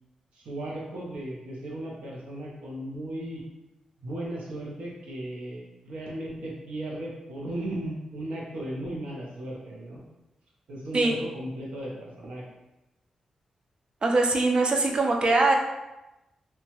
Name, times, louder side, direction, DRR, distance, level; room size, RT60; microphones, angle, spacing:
voice 1, 0.3-3.4 4.0-10.0 10.7-12.4, right 1 dB, 90° right, -3 dB, 0.7 m, -36 dB
voice 2, 14.0-15.6, right 3 dB, 50° right, 1 dB, 0.5 m, -22 dB
2.8 x 2.3 x 2.9 m, 0.98 s
cardioid pair, 75°, 2 cm